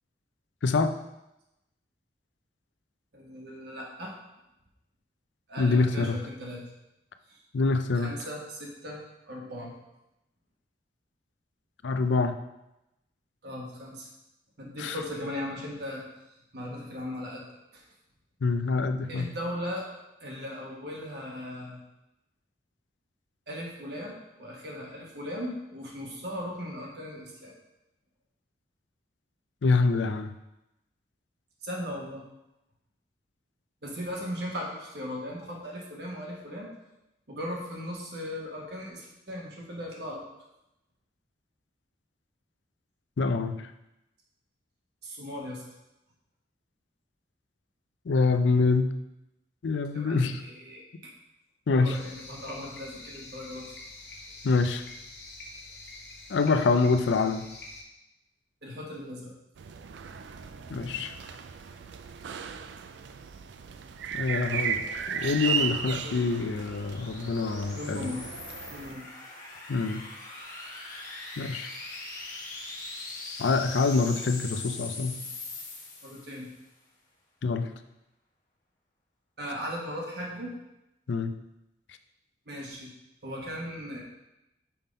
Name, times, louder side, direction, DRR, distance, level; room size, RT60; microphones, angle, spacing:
voice 1, 0.6-1.0 5.6-6.2 7.5-8.1 11.8-12.4 14.8-15.0 18.4-19.3 29.6-30.3 43.2-43.7 48.1-48.9 49.6-50.4 51.7-52.0 54.4-54.8 56.3-57.5 60.7-61.1 64.1-68.1 69.7-70.0 71.4-71.7 73.4-75.2 77.4-77.7 81.1-81.3, left 4 dB, 85° left, 9 dB, 0.5 m, -25 dB
voice 2, 3.1-4.1 5.5-6.6 7.3-7.4 7.9-9.0 9.3-9.7 13.4-14.1 14.6-16.0 16.5-17.5 17.7-17.8 19.1-19.9 20.2-21.8 23.5-27.5 31.6-32.2 33.8-36.7 37.3-40.2 45.0-45.6 49.9-50.8 51.8-53.7 58.6-59.3 66.0-66.3 67.7-68.3 68.7-69.1 76.0-76.5 79.4-80.5 82.5-82.9 83.2-84.0, equal, 65° right, -2 dB, 1.3 m, -38 dB
sound 1, 51.9-57.8, left 2 dB, 65° left, 1.0 m, -46 dB
sound 2, 59.6-69.0, right 7 dB, 80° right, 0.4 m, -35 dB
sound 3, 63.9-76.5, left 3 dB, 45° left, 1.4 m, -42 dB
5.8 x 3.6 x 5.2 m, 0.91 s
head